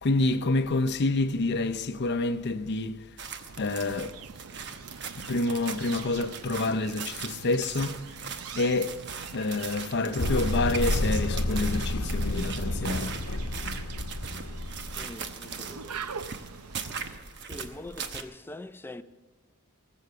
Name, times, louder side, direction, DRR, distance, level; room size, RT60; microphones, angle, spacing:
voice 1, 0.0-3.0 3.6-4.2 5.2-8.0 8.6-9.0 9.3-13.2, left 2 dB, 50° left, 0.7 m, -28 dB
sound 1, 3.2-18.2, right 6 dB, 55° right, 1.0 m, -40 dB
sound 2, 3.5-17.2, right 6 dB, 80° right, 0.6 m, -45 dB
sound 3, 10.2-15.3, left 1 dB, 75° left, 0.9 m, -30 dB
voice 2, 14.9-16.0 17.4-19.0, left 2 dB, 10° left, 0.4 m, -43 dB
19.0 x 7.9 x 6.8 m
head